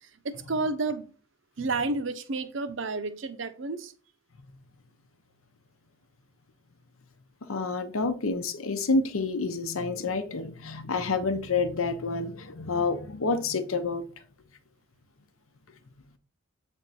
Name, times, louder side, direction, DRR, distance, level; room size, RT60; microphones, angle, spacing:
voice 1, 0.2-1.1 1.6-3.9, right 3 dB, 65° right, 0.7 m, -30 dB
voice 2, 7.5-14.0, left 3 dB, 90° left, 0.8 m, -28 dB
7.8 x 3.6 x 4.1 m
head